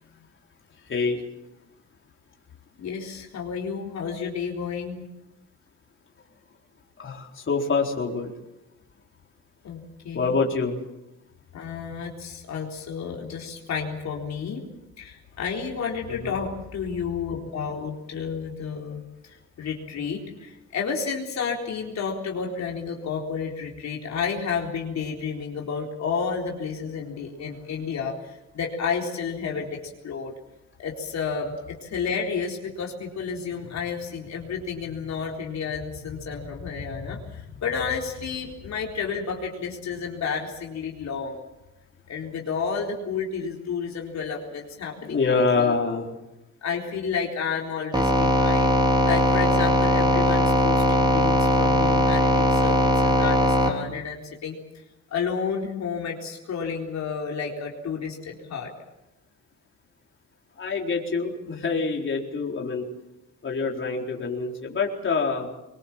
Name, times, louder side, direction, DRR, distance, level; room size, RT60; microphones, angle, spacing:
voice 1, 0.9-1.2 7.0-8.3 10.1-10.8 16.2-16.3 45.0-46.1 60.6-62.8 63.4-65.5, left 4 dB, 40° left, 0 dB, 4.3 m, -26 dB
voice 2, 2.8-5.0 9.6-10.4 11.5-14.6 15.0-29.8 30.0-30.3 30.8-41.4 42.1-45.7 46.6-48.7 49.0-54.6 55.1-58.7, left 6 dB, 65° left, -1 dB, 4.0 m, -31 dB
sound 1, 47.9-53.7, equal, 15° right, 4.3 m, -20 dB
23.5 x 21.5 x 7.4 m, 0.93 s
cardioid pair, 90°, 30 cm